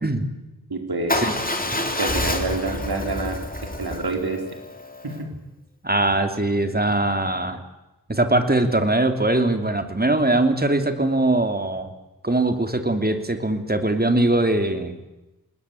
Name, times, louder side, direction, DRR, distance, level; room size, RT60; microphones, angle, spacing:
voice 1, 0.7-1.2 2.0-3.4 3.8-4.4 5.0-5.3, right 3 dB, 90° right, 4 dB, 4.5 m, -27 dB
Motorcycle / Engine starting / Idling, 1.1-5.2, left 1 dB, 25° left, 3.3 m, -28 dB
voice 2, 5.8-7.6 8.1-11.9 12.2-15.0, right 2 dB, 25° right, 7 dB, 2.9 m, -21 dB
27.5 x 20.5 x 8.5 m, 1.0 s
wide cardioid pair, 70°, 37 cm